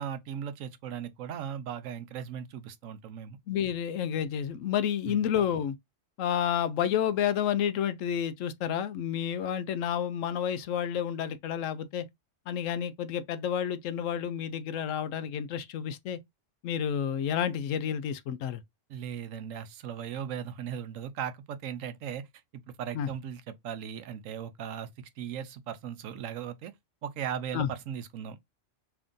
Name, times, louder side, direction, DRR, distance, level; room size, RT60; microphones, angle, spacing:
voice 1, 0.0-3.4 5.1-5.3 18.9-22.3 22.7-26.7 27.0-28.4, right 8 dB, 85° right, 1.0 m, -38 dB
voice 2, 3.5-5.8 6.2-12.1 12.5-16.2 16.6-18.6 22.9-23.1 27.5-27.7, left 9 dB, 80° left, 0.9 m, -30 dB
3.4 x 2.6 x 3.6 m
omnidirectional pair, 1.3 m